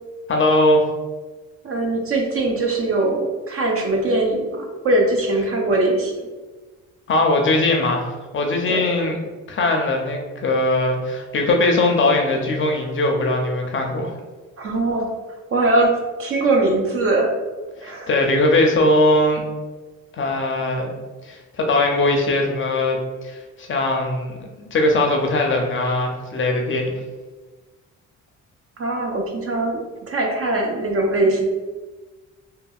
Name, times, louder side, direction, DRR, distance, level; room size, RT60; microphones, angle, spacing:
voice 1, 0.3-0.8 7.1-9.2 9.5-14.1 18.1-19.4 20.1-20.9 21.3-23.0 23.2-26.9, left 2 dB, 40° left, 2 dB, 0.5 m, -20 dB
voice 2, 1.6-6.1 8.7-8.8 14.6-15.1 15.5-17.3 17.8-18.2 28.8-31.4, right 2 dB, 50° right, 1 dB, 0.6 m, -21 dB
2.7 x 2.6 x 2.3 m, 1.3 s
cardioid pair, 90°, 30 cm